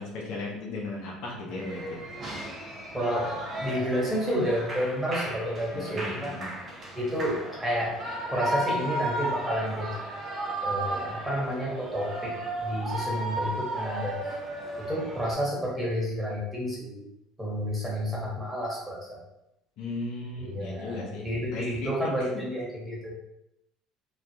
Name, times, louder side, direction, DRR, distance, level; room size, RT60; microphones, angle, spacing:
voice 1, 0.0-2.0 5.7-6.5 19.8-21.9 22.2-22.3, left 2 dB, 65° left, -2 dB, 0.5 m, -36 dB
Shout / Cheering, 1.5-15.4, right 1 dB, 35° right, 0.6 m, -34 dB
voice 2, 2.9-6.4 6.9-8.0 8.3-9.9 10.6-12.3 12.6-14.2 14.8-17.1 17.4-19.2 20.4-23.1, equal, 10° right, -5 dB, 1.2 m, -30 dB
2.2 x 2.2 x 2.7 m, 0.84 s
hypercardioid pair, 70°, 0 cm